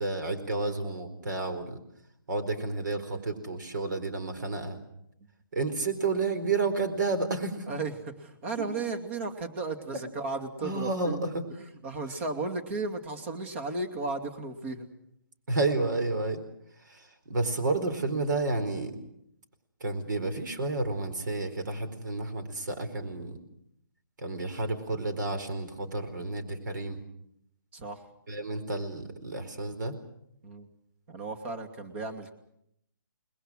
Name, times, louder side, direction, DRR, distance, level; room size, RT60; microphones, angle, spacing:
voice 1, 0.0-1.8 2.3-4.8 5.5-7.7 8.6-8.7 10.6-11.5 12.1-12.2 15.5-16.4 16.9-18.9 19.8-23.4 24.2-27.0 28.3-30.0, right 3 dB, 60° right, 8 dB, 4.5 m, -31 dB
voice 2, 8.2-11.2 11.5-14.9 27.7-28.0 30.4-30.7 31.1-32.3, right 3 dB, 35° right, 5 dB, 2.6 m, -35 dB
29.0 x 21.0 x 6.4 m, 0.75 s
hypercardioid pair, 155°, 11 cm